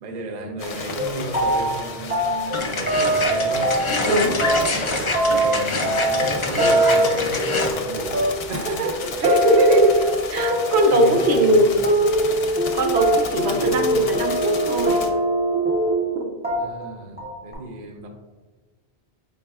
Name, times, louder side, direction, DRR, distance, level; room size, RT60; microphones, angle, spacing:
voice 1, 0.0-3.7 5.0-9.5 10.7-11.7 13.2-14.0 16.6-18.1, right 2 dB, 50° right, 4 dB, 0.6 m, -34 dB
sound 1, 0.6-15.1, left 4 dB, 70° left, 0.8 m, -34 dB
sound 2, 0.6-0.7 1.0-1.8 2.1-4.1 4.4-16.2 16.4-16.9 17.2-17.5, right 1 dB, 10° right, 0.6 m, -22 dB
sound 3, 2.5-7.7, left 3 dB, 50° left, 0.4 m, -26 dB
voice 2, 9.2-9.9 10.3-11.7 12.7-15.0 16.1-16.2, right 1 dB, 75° right, 3 dB, 0.9 m, -19 dB
5.3 x 4.0 x 2.3 m, 1.3 s
omnidirectional pair, 1.1 m